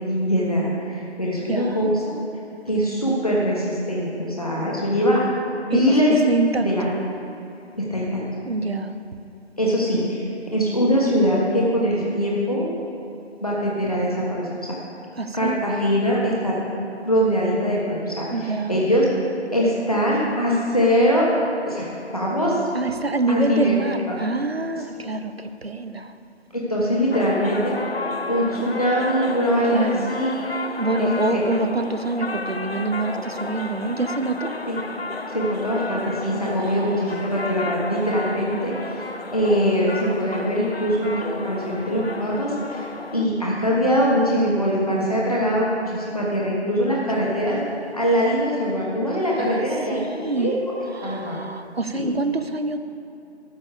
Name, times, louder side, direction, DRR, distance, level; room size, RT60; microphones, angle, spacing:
voice 1, 0.1-2.2 2.7-5.2 5.5-6.1 6.6-6.9 7.9-8.2 9.6-10.3 10.5-12.7 13.4-14.5 15.3-16.6 17.0-19.1 19.5-21.3 21.6-21.9 22.1-22.6 23.3-23.7 24.1-24.2 26.5-27.8 28.3-30.5 31.0-31.4 34.7-34.8 35.3-39.1 39.3-47.6 47.9-50.5 51.0-51.4 51.9-52.1, equal, 30° left, -5 dB, 1.4 m, -22 dB
voice 2, 1.5-1.9 5.7-5.8 6.1-7.0 8.5-9.0 15.2-15.6 18.3-18.8 22.7-26.2 29.7-30.1 30.8-34.5 36.3-37.2 47.1-47.8 49.4-50.5 50.9-52.8, right 3 dB, 60° right, 9 dB, 0.7 m, -26 dB
sound 1, 27.1-43.3, left 3 dB, 60° left, 0.6 m, -32 dB
13.0 x 5.2 x 6.7 m, 2.8 s
figure-of-eight pair, 175°, 34 cm